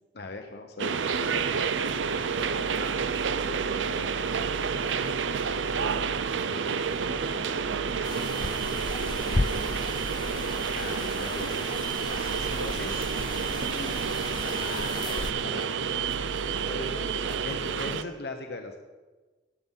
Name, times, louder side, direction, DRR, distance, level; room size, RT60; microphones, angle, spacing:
voice 1, 0.1-1.0 1.3-1.6 10.8-13.1 14.4-15.9 16.5-16.9 17.4-18.8, left 2 dB, 60° left, 4 dB, 1.0 m, -39 dB
sound 1, 0.8-18.0, right 6 dB, 85° right, 0.6 m, -29 dB
voice 2, 2.3-2.7 3.3-6.0 6.5-10.4 13.6-14.0 15.3-16.2 16.6-18.0, equal, ahead, -8 dB, 5.0 m, -45 dB
sound 2, 8.0-15.3, left 2 dB, 25° left, 0.5 m, -35 dB
20.0 x 7.4 x 5.7 m, 1.3 s
head